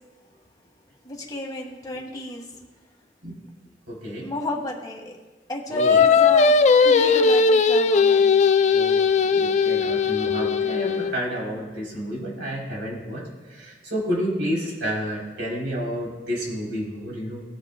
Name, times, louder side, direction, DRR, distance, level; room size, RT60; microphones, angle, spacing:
voice 1, 1.0-2.4 4.2-5.1 5.5-6.6 6.8-8.4, left 1 dB, 20° left, -1 dB, 1.8 m, -33 dB
voice 2, 3.9-4.3 5.7-6.0 8.7-17.4, equal, 80° right, -3 dB, 3.6 m, -30 dB
Singing, 5.8-11.1, left 5 dB, 40° left, 0.4 m, -18 dB
19.0 x 7.6 x 2.2 m, 1.3 s
head